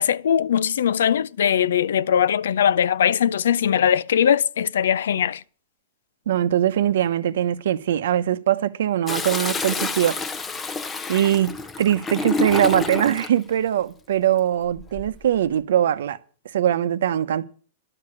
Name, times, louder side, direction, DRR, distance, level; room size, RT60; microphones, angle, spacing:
voice 1, 0.0-5.4, left 9 dB, 90° left, 0.5 m, -20 dB
voice 2, 6.3-10.2 11.1-11.5 11.8-16.2 16.5-17.5, right 10 dB, 75° right, 0.9 m, -21 dB
Toilet flush, 9.1-13.4 14.7-15.2, left 3 dB, 10° left, 0.6 m, -28 dB
12.0 x 6.8 x 8.3 m
supercardioid pair, 165°, 0 cm